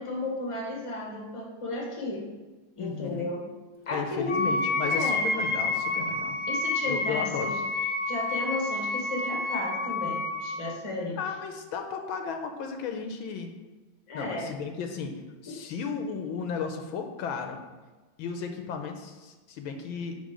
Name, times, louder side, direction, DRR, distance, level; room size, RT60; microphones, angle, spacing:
voice 1, 0.0-2.3 2.8-3.5 3.9-4.6 4.8-5.2 6.5-7.5 8.1-11.2 14.1-14.5 15.5-15.7, left 2 dB, 20° left, -2 dB, 1.2 m, -34 dB
voice 2, 2.8-3.3 3.9-6.4 6.8-7.5 11.2-13.5 14.1-15.1 15.4-17.6 18.2-20.1, left 6 dB, 80° left, 5 dB, 1.5 m, -34 dB
Wind instrument woodwind instrument, 4.3-10.6, left 2 dB, 35° left, 0.4 m, -29 dB
9.3 x 3.6 x 5.1 m, 1.2 s
omnidirectional pair, 2.2 m